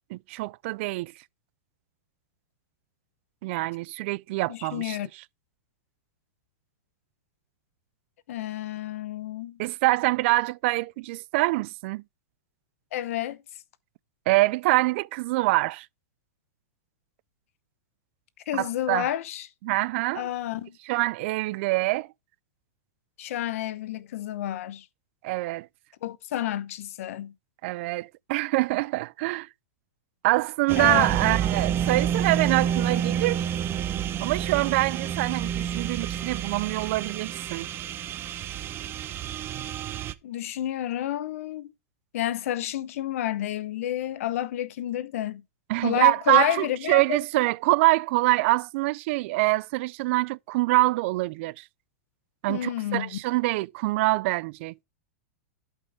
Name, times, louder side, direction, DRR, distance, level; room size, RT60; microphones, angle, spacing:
voice 1, 0.1-1.1 3.4-5.0 9.6-12.0 14.3-15.9 18.5-19.1 19.6-20.3 20.9-22.1 25.2-25.7 27.6-29.5 30.2-33.5 34.2-37.7 45.7-51.6 52.4-54.7, right 21 dB, 55° right, 0.4 m, -25 dB
voice 2, 4.5-5.1 8.3-9.6 12.9-13.4 18.5-19.5 20.1-20.8 23.2-24.8 26.0-27.3 30.8-31.4 40.2-41.7 42.1-45.4 45.8-47.2 52.5-53.1, left 12 dB, 70° left, 0.9 m, -30 dB
sound 1, 30.7-40.1, right 9 dB, 30° right, 0.7 m, -29 dB
11.5 x 5.4 x 3.4 m
hypercardioid pair, 125°, 8 cm